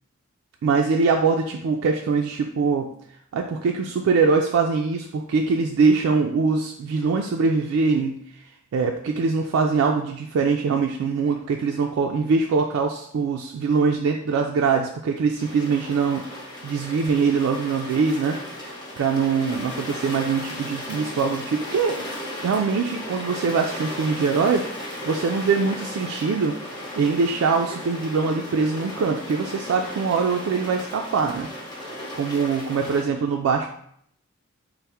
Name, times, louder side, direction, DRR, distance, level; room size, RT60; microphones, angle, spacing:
voice 1, 0.6-2.9 3.3-8.4 8.7-16.3 16.6-22.1 22.4-24.6 25.0-26.6 26.9-31.5 32.1-33.7, right 5 dB, 75° right, 2 dB, 0.3 m, -23 dB
sound 1, 15.3-33.0, left 1 dB, 20° left, 0.7 m, -36 dB
3.4 x 2.0 x 4.3 m, 0.69 s
head